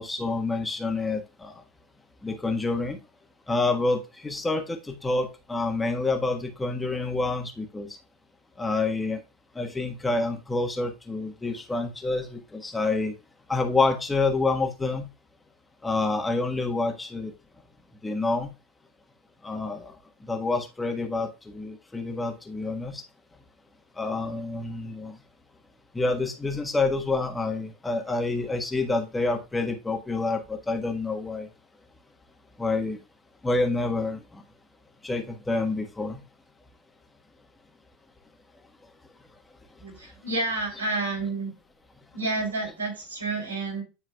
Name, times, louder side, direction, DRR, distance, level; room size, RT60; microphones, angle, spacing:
voice 1, 0.0-1.5 2.2-3.0 3.5-7.9 8.6-9.2 9.5-13.1 13.5-15.1 15.8-17.3 18.0-18.5 19.4-19.9 20.3-23.0 24.0-25.2 25.9-31.5 32.6-33.0 33.4-34.4 35.0-36.2, left 3 dB, 15° left, 4 dB, 1.4 m, -28 dB
voice 2, 39.8-41.5 42.1-43.8, right 2 dB, 90° right, 1 dB, 3.3 m, -30 dB
10.5 x 4.7 x 2.3 m, 0.28 s
hypercardioid pair, 85°, 0 cm